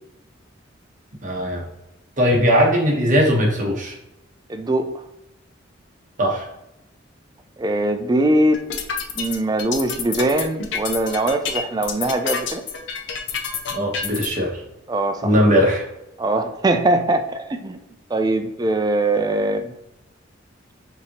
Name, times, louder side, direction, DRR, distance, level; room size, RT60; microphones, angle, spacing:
voice 1, 1.2-1.6 2.2-3.9 6.2-6.5 13.7-14.6 15.2-15.8, equal, 40° right, -1 dB, 1.1 m, -19 dB
voice 2, 4.5-5.1 7.6-8.6 9.1-12.6 14.9-15.3 16.2-17.8 18.1-19.7, right 1 dB, 20° right, 7 dB, 0.4 m, -21 dB
sound 1, 8.5-14.3, left 6 dB, 65° left, 0.6 m, -28 dB
5.2 x 2.9 x 2.9 m, 0.89 s
head